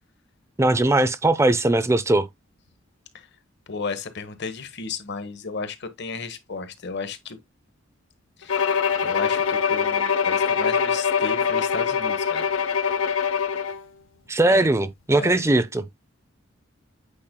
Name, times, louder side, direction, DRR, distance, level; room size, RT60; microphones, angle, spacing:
voice 1, 0.6-2.3 14.3-15.8, right 2 dB, 15° right, 0.5 m, -20 dB
voice 2, 3.7-7.4 8.4-8.7 9.0-12.5 14.5-14.7 15.1-15.4, left 4 dB, 60° left, 1.2 m, -34 dB
Bowed string instrument, 8.5-13.8, left 6 dB, 80° left, 0.6 m, -23 dB
8.7 x 5.1 x 2.2 m
head